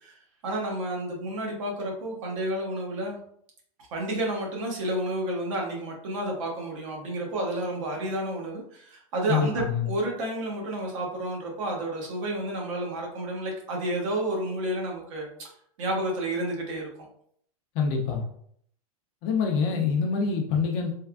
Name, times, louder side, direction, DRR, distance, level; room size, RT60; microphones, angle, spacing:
voice 1, 0.0-3.2 3.9-15.5 15.8-17.1, right 1 dB, 60° right, -1 dB, 1.1 m, -31 dB
voice 2, 9.3-9.9 17.7-18.2 19.2-20.9, left 5 dB, 30° left, 2 dB, 0.4 m, -25 dB
3.4 x 2.3 x 2.3 m, 0.65 s
supercardioid pair, 155°, 19 cm